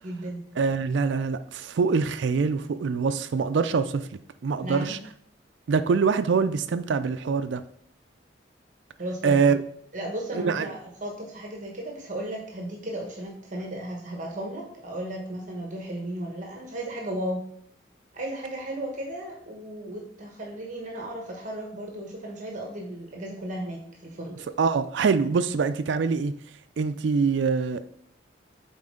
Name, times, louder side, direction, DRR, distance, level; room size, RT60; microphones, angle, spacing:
voice 1, 0.0-0.5 4.6-5.0 9.0-9.6 9.9-17.4 18.1-24.4, right 1 dB, 40° right, 0 dB, 1.1 m, -35 dB
voice 2, 0.6-4.1 4.4-5.0 5.7-7.6 9.2-9.6 10.3-10.7 24.6-26.3 26.8-27.8, right 5 dB, 70° right, 10 dB, 0.4 m, -24 dB
7.8 x 4.2 x 3.7 m, 0.68 s
head